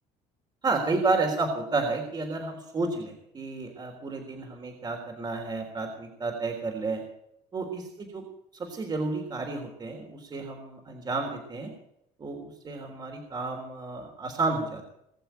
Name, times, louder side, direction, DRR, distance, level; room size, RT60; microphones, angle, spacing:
voice 1, 0.6-7.0 7.5-8.2 8.6-11.7 12.2-14.9, right 3 dB, 30° right, 2 dB, 3.7 m, -31 dB
21.0 x 7.1 x 9.1 m, 0.77 s
cardioid pair, 120°, 15 cm